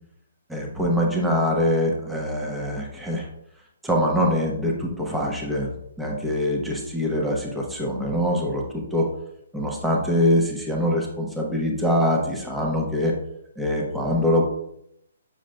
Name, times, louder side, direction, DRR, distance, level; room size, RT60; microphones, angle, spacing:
voice 1, 0.5-3.3 3.8-9.1 9.5-13.1 13.6-14.4, equal, 5° right, -1 dB, 1.0 m, -24 dB
7.1 x 6.3 x 2.2 m, 0.76 s
figure-of-eight pair, 135°, 0 cm